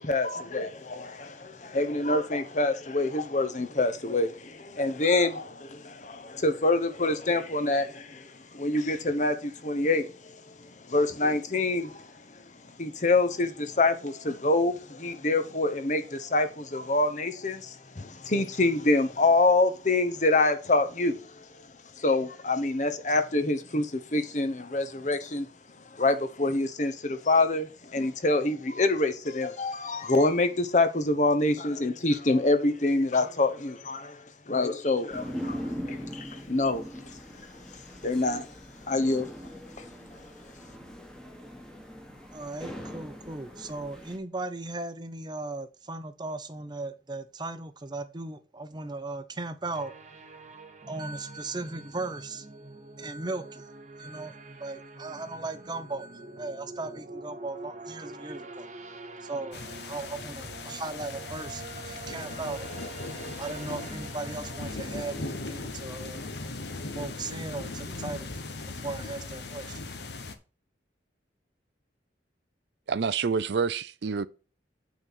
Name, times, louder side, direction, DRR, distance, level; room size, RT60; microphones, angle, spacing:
voice 1, 0.0-10.5 10.9-12.1 12.8-21.5 22.0-25.5 25.9-36.8 38.0-38.5 38.9-39.3, left 2 dB, 40° left, 1.0 m, -26 dB
sound 1, 35.1-44.2, equal, 5° left, 1.4 m, -41 dB
voice 2, 42.3-49.9 50.9-52.5 53.0-53.7 54.0-58.7 59.2-59.6 59.9-62.8 63.4-66.3 66.9-68.3 68.8-69.8, right 3 dB, 25° right, 0.7 m, -37 dB
sound 2, 49.7-65.4, right 3 dB, 40° right, 1.1 m, -45 dB
sound 3, 59.5-70.4, left 3 dB, 70° left, 1.0 m, -38 dB
voice 3, 72.9-74.3, right 5 dB, 70° right, 0.5 m, -27 dB
8.8 x 4.0 x 6.2 m
head